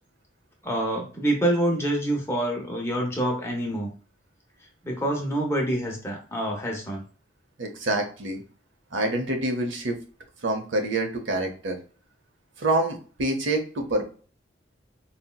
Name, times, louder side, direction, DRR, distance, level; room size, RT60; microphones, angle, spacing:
voice 1, 0.6-3.9 4.8-7.0, right 1 dB, 15° left, 0 dB, 0.7 m, -26 dB
voice 2, 7.6-8.4 8.9-10.0 10.4-11.8 12.6-14.0, right 2 dB, 85° right, 4 dB, 0.7 m, -26 dB
4.1 x 2.0 x 2.2 m, 0.39 s
head